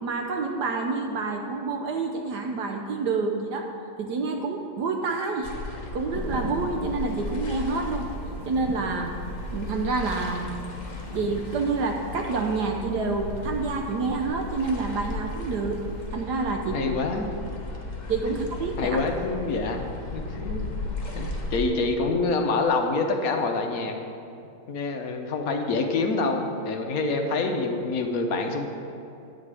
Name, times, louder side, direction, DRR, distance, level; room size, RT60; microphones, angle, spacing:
voice 1, 0.0-3.7 4.0-5.5 5.9-8.1 8.5-9.2 9.5-10.5 11.1-15.8 16.1-16.9 18.1-19.1, right 4 dB, 65° right, 3 dB, 1.1 m, -28 dB
sound 1, 5.4-21.7, left 2 dB, 35° left, 0.7 m, -35 dB
Thunder / Rain, 6.1-16.1, right 1 dB, 35° right, 0.6 m, -43 dB
voice 2, 16.7-17.3 18.3-18.4 18.8-20.7 21.1-23.9 24.7-28.7, left 3 dB, 60° left, 4 dB, 1.0 m, -26 dB
10.5 x 8.6 x 4.9 m, 2.7 s
omnidirectional pair, 2.3 m